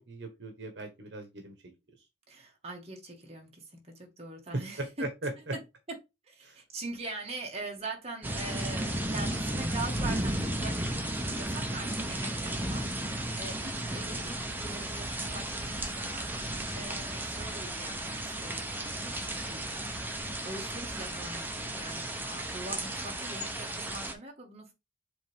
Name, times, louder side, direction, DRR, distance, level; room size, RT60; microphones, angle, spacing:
voice 1, 0.1-1.7 4.5-5.5 6.4-6.6 13.8-14.0, right 2 dB, 75° right, 1.3 m, -38 dB
voice 2, 2.3-5.1 5.5-5.6 6.3-19.2 19.4-19.6 20.4-24.7, right 2 dB, 35° right, 2.1 m, -42 dB
sound 1, 8.2-24.1, right 1 dB, 10° right, 0.9 m, -34 dB
7.8 x 3.5 x 3.5 m
head